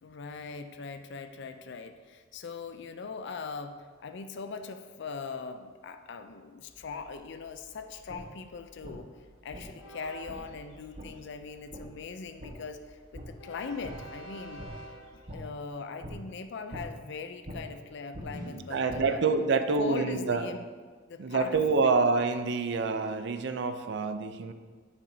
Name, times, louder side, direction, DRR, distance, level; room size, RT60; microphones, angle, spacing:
voice 1, 0.0-3.7 4.0-9.1 9.4-14.6 15.3-19.2 19.7-20.7 21.1-21.9, left 4 dB, 60° left, 8 dB, 0.4 m, -40 dB
Train, 6.7-15.3, right 1 dB, 80° left, 1.0 m, -51 dB
sound 1, 8.1-8.2 8.8-8.9 9.5-9.6 10.3-10.4 10.9-11.1 11.7-11.8 12.4-12.5 13.1-13.3 13.8-13.9 14.6-14.7 15.3-15.4 16.0-16.1 16.7-16.8 17.4-17.6 18.1-19.0, equal, 40° right, 1.2 m, -42 dB
voice 2, 18.4-20.5 21.2-24.5, right 4 dB, 60° right, 9 dB, 0.5 m, -27 dB
8.6 x 6.8 x 2.7 m, 1.5 s
head